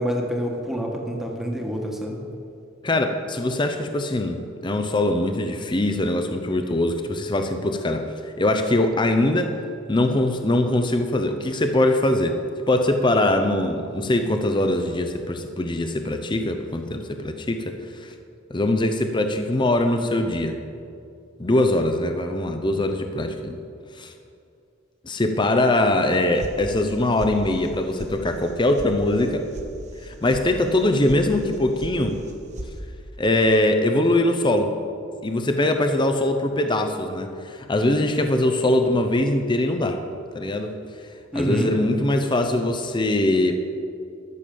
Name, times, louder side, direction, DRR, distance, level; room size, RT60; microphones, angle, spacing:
voice 1, 0.0-2.2 41.3-41.7, equal, ahead, 0 dB, 1.4 m, -27 dB
voice 2, 2.8-9.5 9.9-12.4 12.7-18.1 18.5-20.6 21.4-23.6 24.0-24.1 25.0-29.5 30.0-32.2 33.2-34.7 35.2-40.0 40.3-40.7 41.3-43.5, left 1 dB, 25° left, 6 dB, 0.7 m, -22 dB
sound 1, 26.4-26.9 27.2-27.7 28.0-28.1 28.4-28.9 29.2-29.7 30.0-30.4 30.8-31.2 31.5-32.0 32.2-32.7, right 1 dB, 35° right, 1.0 m, -36 dB
12.0 x 7.1 x 6.8 m, 2.4 s
head